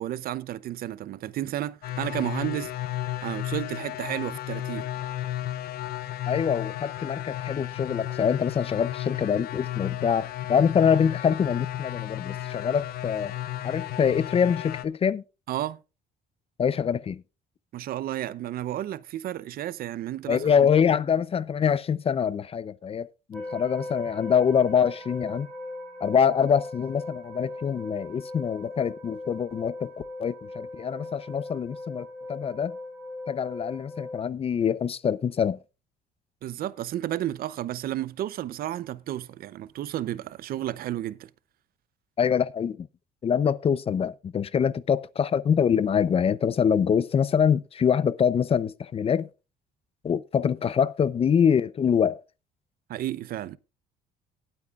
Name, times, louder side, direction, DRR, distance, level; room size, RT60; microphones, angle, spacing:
voice 1, 0.0-2.7 3.2-4.9 15.5-15.8 17.7-20.7 36.4-41.3 52.9-53.6, right 13 dB, 60° right, 0.6 m, -32 dB
sound 1, 1.8-14.8, left 13 dB, 65° left, 0.8 m, -33 dB
voice 2, 6.3-13.3 13.6-15.2 16.6-17.2 20.3-25.5 26.0-29.9 30.2-32.8 33.3-35.6 42.2-42.9 43.2-49.3 50.0-52.2, left 7 dB, 35° left, 0.6 m, -24 dB
sound 2, 23.3-34.2, left 2 dB, 10° left, 4.1 m, -39 dB
18.0 x 8.9 x 2.4 m
cardioid pair, 110°, 17 cm